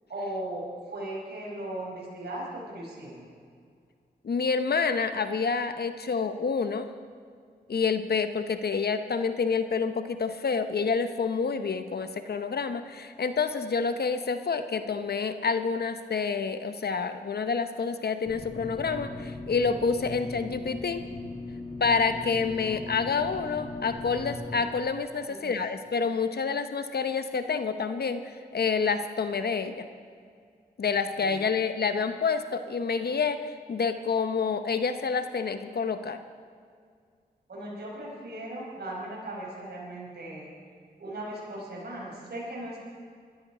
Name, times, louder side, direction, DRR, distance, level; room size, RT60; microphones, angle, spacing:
voice 1, 0.1-3.3 25.3-25.6 31.2-31.4 37.5-40.5 41.0-42.8, right 1 dB, 65° right, -4 dB, 5.2 m, -37 dB
voice 2, 4.2-6.9 7.7-21.0 21.8-29.9 30.8-36.2, left 5 dB, 65° left, 9 dB, 0.9 m, -28 dB
sound 1, 18.3-24.6, left 3 dB, 45° left, 4.1 m, -38 dB
20.5 x 13.5 x 5.0 m, 2.2 s
cardioid pair, 50°, 18 cm